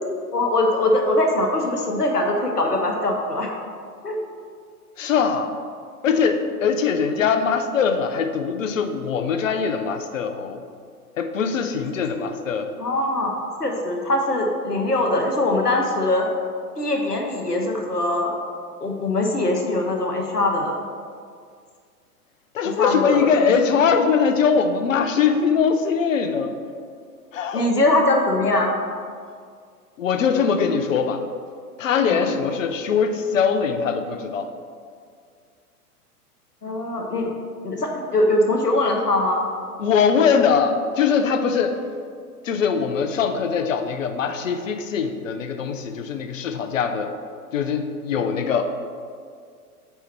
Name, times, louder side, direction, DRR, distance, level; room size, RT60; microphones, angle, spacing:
voice 1, 0.3-3.5 4.0-4.2 12.2-12.3 12.8-13.3 13.6-16.3 16.8-18.4 18.8-20.8 22.6-23.3 27.5-28.7 32.1-32.3 36.6-37.3 37.6-39.4, left 2 dB, 85° left, 1 dB, 1.0 m, -22 dB
voice 2, 5.0-5.5 6.0-10.6 11.2-12.7 22.5-26.5 27.3-27.7 30.0-31.2 31.8-34.5 39.8-41.8 42.4-47.1 47.5-48.7, left 6 dB, 55° left, 7 dB, 0.6 m, -22 dB
4.5 x 4.3 x 5.8 m, 2.1 s
figure-of-eight pair, 105°, 46 cm